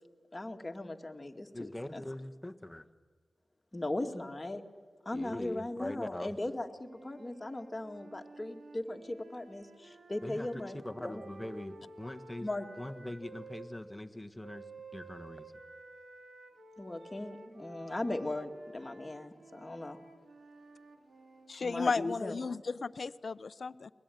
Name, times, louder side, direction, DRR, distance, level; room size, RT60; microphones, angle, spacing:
voice 1, 0.3-2.0 3.7-4.6 5.1-11.2 12.4-12.7 16.8-20.0 21.6-22.4, left 2 dB, 25° left, 3 dB, 2.2 m, -38 dB
voice 2, 1.5-2.9 5.1-6.3 10.2-10.5 10.8-12.5 12.8-15.5, left 1 dB, 10° left, 7 dB, 1.6 m, -42 dB
sound 1, 6.7-13.7 14.4-21.6, right 3 dB, 65° right, 3.1 m, -53 dB
voice 3, 21.5-23.9, left 4 dB, 65° left, 15 dB, 0.7 m, -34 dB
22.0 x 22.0 x 9.4 m, 1.5 s
cardioid pair, 50°, 0 cm